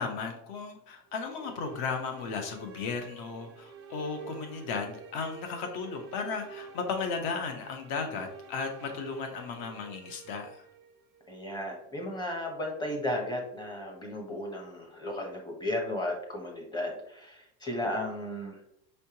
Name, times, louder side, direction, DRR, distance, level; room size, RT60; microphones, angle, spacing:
voice 1, 0.0-10.7, left 5 dB, 55° left, 5 dB, 1.0 m, -35 dB
sound 1, 1.1-11.3, right 5 dB, 30° right, 0.5 m, -49 dB
voice 2, 11.3-18.6, left 1 dB, 10° left, 1 dB, 0.8 m, -34 dB
5.4 x 3.3 x 2.8 m, 0.75 s
cardioid pair, 165°, 39 cm